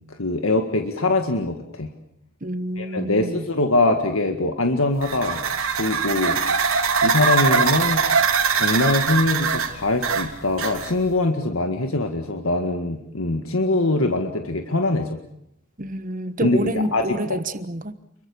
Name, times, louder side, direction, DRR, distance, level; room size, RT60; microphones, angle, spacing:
voice 1, 0.2-1.9 2.8-5.4 5.8-6.4 7.0-8.0 8.5-15.2 16.4-17.0 17.3-17.4, left 2 dB, 75° left, 5 dB, 1.9 m, -22 dB
voice 2, 2.4-3.5 15.8-17.9, right 1 dB, 40° right, 12 dB, 1.4 m, -28 dB
sound 1, 5.0-11.1, right 5 dB, 80° right, 3.3 m, -22 dB
29.0 x 23.0 x 7.1 m, 0.72 s
head